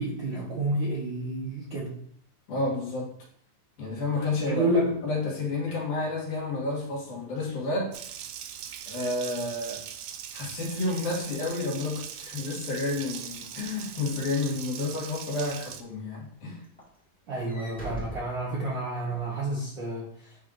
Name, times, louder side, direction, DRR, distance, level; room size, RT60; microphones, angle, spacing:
voice 1, 0.0-2.0 4.5-5.0 17.3-20.1, right 1 dB, 70° right, -4 dB, 1.1 m, -29 dB
voice 2, 2.5-3.1 3.8-4.7 5.0-8.0 8.9-9.8 10.3-16.6, left 2 dB, 70° left, -4 dB, 3.2 m, -30 dB
Water tap faucet, 7.9-15.8, right 9 dB, 85° right, 1.5 m, -40 dB
Walk footsteps / Slam, 10.0-15.0 15.5-15.8 16.1-19.1, right 2 dB, 5° left, 0.6 m, -46 dB
9.2 x 4.6 x 2.6 m, 0.65 s
omnidirectional pair, 3.8 m